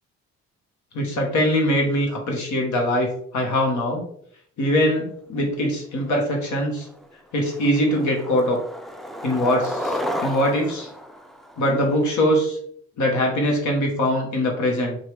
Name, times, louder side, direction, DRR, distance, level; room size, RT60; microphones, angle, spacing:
voice 1, 0.9-4.0 4.6-6.9 7.3-8.6 9.2-10.9 11.6-12.6 13.0-15.0, equal, 70° left, 1 dB, 1.1 m, -22 dB
Skateboard, 6.3-6.4 6.8-7.1 7.5-12.1, equal, ahead, 0.3 m, -32 dB
4.6 x 2.4 x 3.2 m, 0.64 s
cardioid pair, 90°, 30 cm